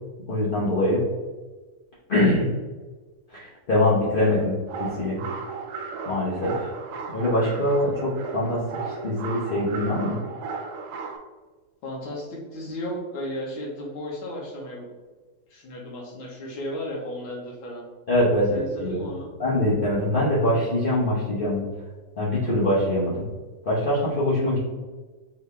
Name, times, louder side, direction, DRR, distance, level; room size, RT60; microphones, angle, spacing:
voice 1, 0.3-1.0 2.1-2.5 3.3-5.2 6.1-6.7 7.1-8.6 8.9-10.2 18.1-19.0 19.4-21.6 22.2-23.2 23.6-24.6, left 1 dB, 45° left, -9 dB, 0.7 m, -23 dB
sound 1, 4.2-11.2, right 4 dB, 90° right, 1.4 m, -35 dB
voice 2, 11.8-14.9 15.5-17.9 18.5-19.3, left 1 dB, 85° left, -2 dB, 1.8 m, -34 dB
4.5 x 3.1 x 3.3 m, 1.3 s
omnidirectional pair, 2.2 m